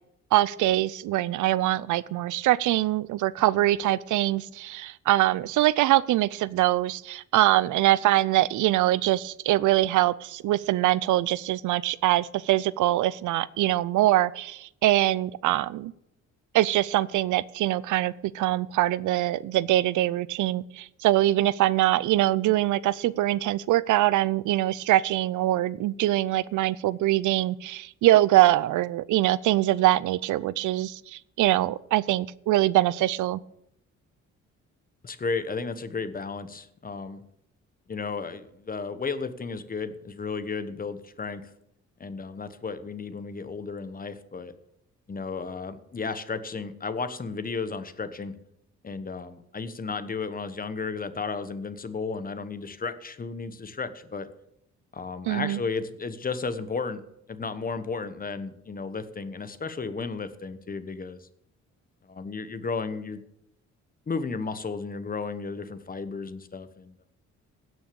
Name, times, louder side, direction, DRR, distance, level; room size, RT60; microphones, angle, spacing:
voice 1, 0.3-15.9 16.5-33.4 55.3-55.6, right 15 dB, 80° right, 20 dB, 0.5 m, -23 dB
voice 2, 35.0-37.2 37.9-41.5 42.0-44.5 45.1-48.3 48.8-54.3 54.9-57.0 57.3-61.3 62.1-63.2 64.1-67.0, left 4 dB, 30° left, 12 dB, 1.1 m, -33 dB
16.5 x 6.3 x 6.9 m, 0.77 s
cardioid pair, 90°, 30 cm